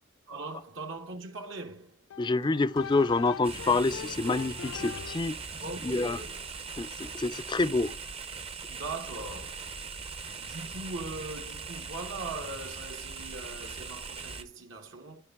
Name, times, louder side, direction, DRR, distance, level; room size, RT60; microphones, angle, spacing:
voice 1, 0.3-2.0 5.6-6.4 8.7-9.7 10.4-15.2, right 3 dB, 65° right, 1.1 m, -40 dB
sound 1, 2.1-5.4, left 8 dB, 85° left, 0.4 m, -42 dB
voice 2, 2.2-5.4 5.8-6.2 6.8-7.9, left 3 dB, 20° left, 0.4 m, -27 dB
sound 2, 3.4-14.4, right 4 dB, 30° right, 0.7 m, -40 dB
12.5 x 5.2 x 3.5 m
head